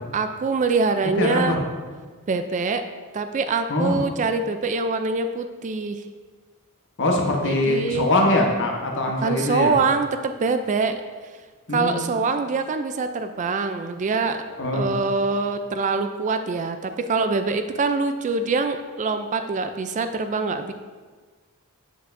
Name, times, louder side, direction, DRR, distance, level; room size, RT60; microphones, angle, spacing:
voice 1, 0.1-1.6 2.3-2.8 3.1-6.0 7.4-8.1 9.2-11.0 11.7-14.4 14.7-20.7, right 4 dB, 35° right, 8 dB, 0.3 m, -24 dB
voice 2, 1.2-1.6 3.7-4.0 7.0-9.7 11.7-12.0 14.6-14.9, left 1 dB, 55° left, 0 dB, 1.0 m, -22 dB
8.0 x 7.8 x 2.6 m, 1.4 s
head